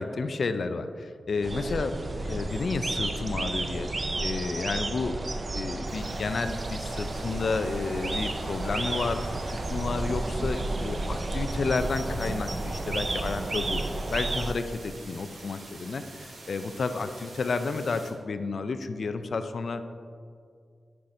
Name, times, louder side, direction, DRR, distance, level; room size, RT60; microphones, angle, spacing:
voice 1, 0.0-2.0 2.3-3.9 4.2-5.2 5.5-19.8, left 4 dB, 60° left, 9 dB, 0.3 m, -31 dB
sound 1, 1.4-14.5, right 2 dB, 35° right, 0.4 m, -32 dB
sound 2, 5.9-18.1, right 2 dB, 60° right, 1.0 m, -47 dB
10.5 x 5.6 x 2.6 m, 2.2 s
wide cardioid pair, 120°, 0 cm